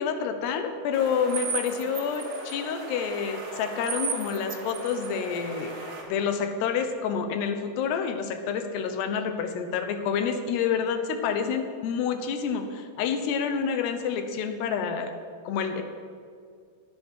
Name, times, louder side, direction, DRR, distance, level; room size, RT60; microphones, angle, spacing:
voice 1, 0.0-5.7 6.1-15.2 15.5-15.8, left 6 dB, 75° left, 7 dB, 3.1 m, -28 dB
sound 1, 0.9-6.0, right 4 dB, 45° right, 1.9 m, -35 dB
19.0 x 8.5 x 6.3 m, 2.2 s
omnidirectional pair, 5.0 m